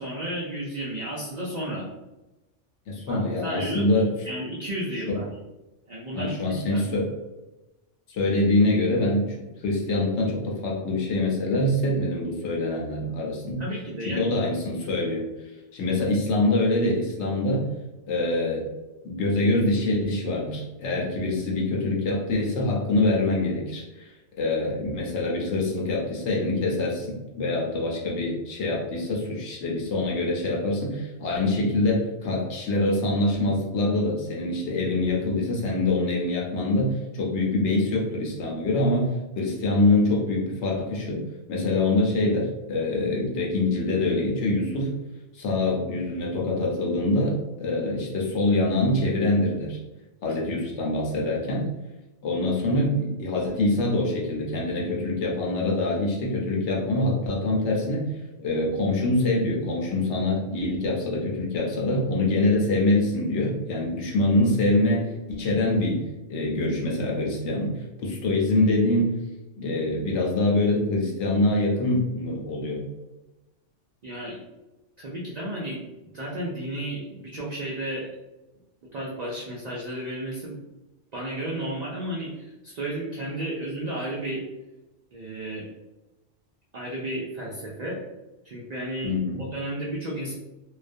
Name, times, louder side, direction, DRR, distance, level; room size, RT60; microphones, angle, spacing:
voice 1, 0.0-1.9 3.1-5.3 5.9-6.8 13.6-14.2 50.3-50.4 74.0-74.4 75.0-75.8 76.1-78.1 78.9-80.6 81.1-84.4 85.1-85.7 86.7-88.0 88.4-89.1 89.5-90.3, right 1 dB, 70° right, -5 dB, 0.4 m, -33 dB
voice 2, 2.9-4.1 5.1-5.2 6.1-7.1 8.1-9.4 9.6-13.6 14.0-15.3 15.7-17.6 18.1-18.7 19.0-24.1 24.4-41.2 41.5-44.9 45.3-49.8 50.2-51.7 52.2-58.1 58.4-66.0 66.3-67.7 68.0-69.2 69.6-72.8 89.0-89.4, left 2 dB, 70° left, -2 dB, 0.9 m, -25 dB
2.3 x 2.1 x 2.5 m, 1.0 s
omnidirectional pair, 1.3 m